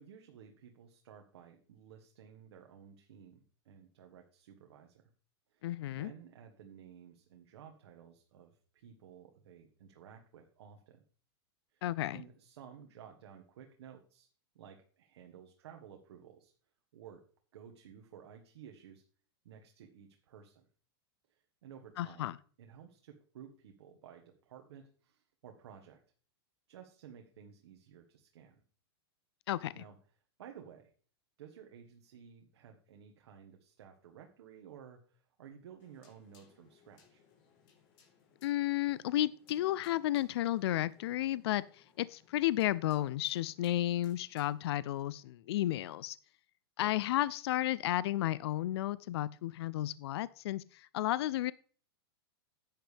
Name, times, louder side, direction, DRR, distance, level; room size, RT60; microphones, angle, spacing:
voice 1, 0.0-5.1 5.5-5.7 6.0-11.0 11.7-11.8 12.1-14.3 14.5-16.5 16.9-17.2 17.5-19.0 19.4-20.7 21.3-22.3 22.6-26.0 26.7-28.6 29.7-30.0 30.4-30.9 31.4-37.2 46.8-47.0, right 8 dB, 75° right, 3 dB, 1.6 m, -54 dB
voice 2, 5.6-6.1 11.8-12.2 22.0-22.3 29.5-29.8 38.4-46.2 46.8-51.5, left 14 dB, 70° left, 19 dB, 0.4 m, -33 dB
sound 1, 35.8-45.0, left 6 dB, 40° left, 3.7 m, -67 dB
10.5 x 8.9 x 3.4 m, 0.43 s
supercardioid pair, 145°, 14 cm